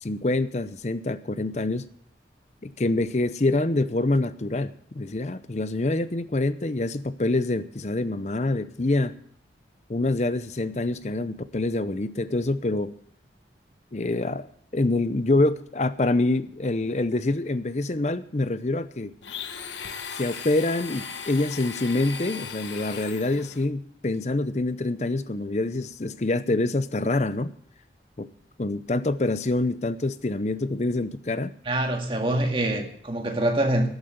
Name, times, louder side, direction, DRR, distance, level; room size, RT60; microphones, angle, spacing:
voice 1, 0.0-1.9 2.6-9.1 9.9-12.9 13.9-14.5 14.7-19.1 20.2-27.5 28.2-28.3 28.6-31.5, left 2 dB, 40° left, 13 dB, 0.6 m, -26 dB
Domestic sounds home sounds, 19.2-23.7, left 6 dB, 90° left, 1.2 m, -37 dB
voice 2, 31.7-33.9, right 1 dB, 30° right, 3 dB, 1.9 m, -25 dB
13.5 x 8.0 x 8.0 m, 0.64 s
head